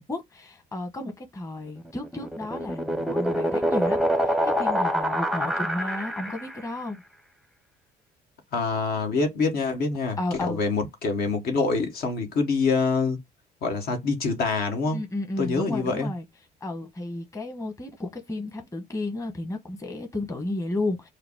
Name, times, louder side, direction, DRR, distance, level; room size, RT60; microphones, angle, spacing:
voice 1, 0.0-7.0 10.2-10.6 14.9-16.2 16.6-21.1, left 2 dB, 20° left, 1.2 m, -32 dB
sound 1, 1.9-6.7, equal, ahead, 0.5 m, -26 dB
voice 2, 8.5-13.2 13.6-15.0 15.4-16.1, left 4 dB, 65° left, 1.4 m, -25 dB
4.9 x 2.1 x 4.5 m
cardioid pair, 110°, 17 cm